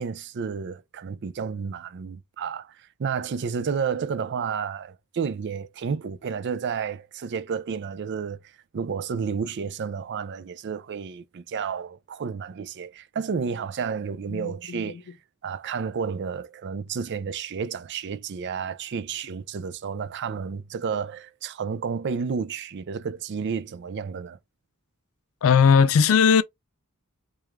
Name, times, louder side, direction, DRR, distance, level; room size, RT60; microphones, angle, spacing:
voice 1, 0.0-8.4 8.7-15.0 15.4-24.4, right 6 dB, 50° right, 0.4 m, -31 dB
voice 2, 14.3-15.0 25.4-26.4, left 6 dB, 65° left, 0.4 m, -19 dB
4.7 x 2.4 x 3.4 m
head